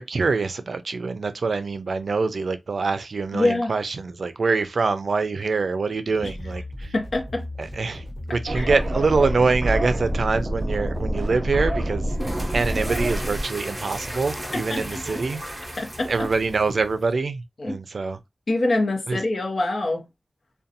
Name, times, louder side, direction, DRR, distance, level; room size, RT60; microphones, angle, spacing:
voice 1, 0.0-6.9 7.6-12.1 12.5-15.4 16.0-18.2 19.1-19.2, right 4 dB, 85° right, 0.3 m, -25 dB
voice 2, 3.3-3.7 6.9-7.4 8.5-8.7 14.5-15.0 15.8-16.3 17.6-17.8 18.5-20.1, left 2 dB, 75° left, 0.7 m, -25 dB
sound 1, 6.1-13.0, left 1 dB, 55° left, 1.2 m, -37 dB
sound 2, 8.5-13.4, right 1 dB, 50° right, 0.6 m, -27 dB
sound 3, 12.1-17.1, equal, 15° right, 0.7 m, -35 dB
2.5 x 2.2 x 2.6 m
wide cardioid pair, 75°, 0 cm